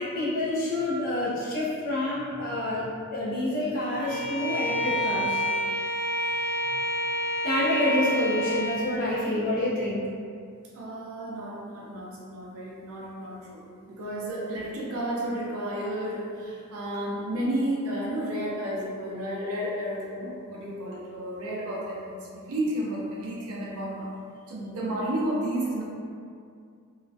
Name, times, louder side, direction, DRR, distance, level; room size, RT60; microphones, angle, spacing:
voice 1, 0.0-5.4 6.5-6.6 7.4-10.1, left 1 dB, 40° left, -7 dB, 0.4 m, -28 dB
Bowed string instrument, 4.0-8.9, equal, 5° right, 0.7 m, -28 dB
voice 2, 10.7-24.1 24.5-25.8, right 1 dB, 65° right, -5 dB, 0.4 m, -32 dB
2.3 x 2.0 x 2.6 m, 2.3 s
head